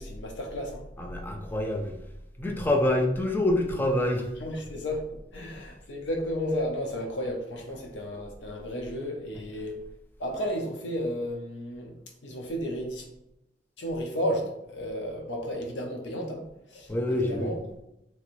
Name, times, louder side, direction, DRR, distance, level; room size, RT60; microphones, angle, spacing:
voice 1, 0.0-0.8 4.4-5.0 5.3-9.8 10.2-11.9 12.2-13.1 13.8-17.6, equal, 75° left, 1 dB, 0.6 m, -33 dB
voice 2, 1.0-1.9 2.4-4.2 16.9-17.5, left 1 dB, 10° left, 2 dB, 0.4 m, -26 dB
3.0 x 2.5 x 3.0 m, 0.86 s
head